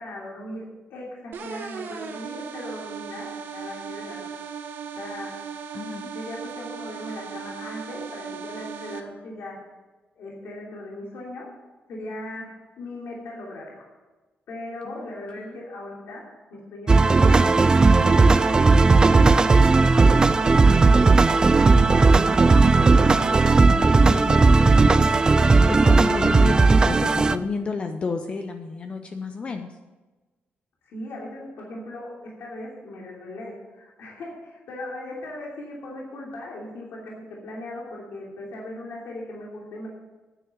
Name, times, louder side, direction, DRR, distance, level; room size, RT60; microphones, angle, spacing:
voice 1, 0.0-4.5 5.0-5.3 6.1-9.6 10.1-11.5 11.9-13.9 14.5-16.2 16.5-17.8 18.1-19.0 19.9-20.7 30.8-39.9, left 1 dB, 80° left, -3 dB, 3.0 m, -38 dB
sound 1, 1.3-9.0, right 7 dB, 65° right, 1.2 m, -37 dB
voice 2, 5.7-6.1 14.8-15.6 22.0-25.1 25.4-29.7, left 4 dB, 30° left, 6 dB, 0.7 m, -33 dB
sound 2, 16.9-27.4, right 3 dB, 20° right, 0.4 m, -16 dB
9.9 x 9.6 x 6.5 m, 1.2 s
wide cardioid pair, 170°, 4 cm